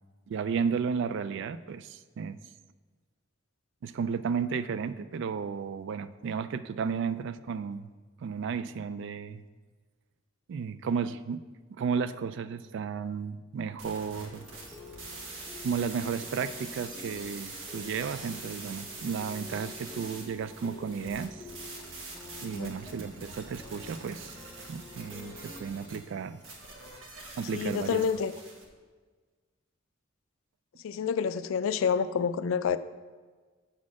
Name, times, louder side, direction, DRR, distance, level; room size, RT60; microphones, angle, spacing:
voice 1, 0.3-2.4 3.8-7.9 8.2-9.4 10.5-11.4 11.7-14.5 15.6-21.4 22.4-24.3 24.7-26.4 27.4-28.0, right 6 dB, 65° right, 14 dB, 0.3 m, -33 dB
sound 1, 13.8-28.6, right 3 dB, 85° right, 1.2 m, -45 dB
sound 2, 14.3-25.8, left 3 dB, 10° left, 0.6 m, -49 dB
voice 2, 27.5-28.3 30.8-32.8, left 6 dB, 85° left, 14 dB, 0.3 m, -28 dB
7.3 x 4.2 x 4.7 m, 1.4 s
head